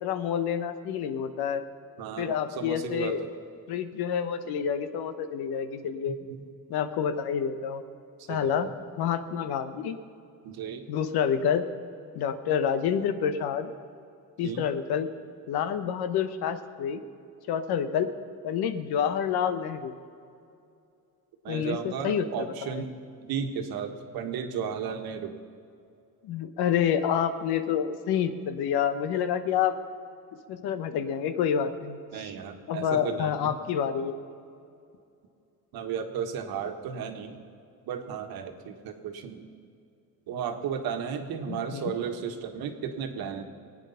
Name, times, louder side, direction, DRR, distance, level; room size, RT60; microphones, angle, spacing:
voice 1, 0.0-1.6 2.2-3.2 3.7-6.2 6.7-7.8 8.3-8.7 9.0-10.0 10.9-11.7 12.1-13.7 14.4-15.1 15.5-17.0 17.5-18.1 18.4-19.9 21.5-22.8 26.2-29.8 30.5-32.3 32.7-34.1 41.5-41.9, left 8 dB, 90° left, 10 dB, 1.1 m, -28 dB
voice 2, 2.0-3.3 6.1-6.4 8.3-8.5 10.4-10.8 14.4-14.7 21.4-25.4 32.1-33.5 35.7-37.4 37.9-39.4 40.3-43.4, right 7 dB, 75° right, 5 dB, 1.5 m, -34 dB
22.5 x 9.2 x 5.7 m, 2.5 s
cardioid pair, 140°, 37 cm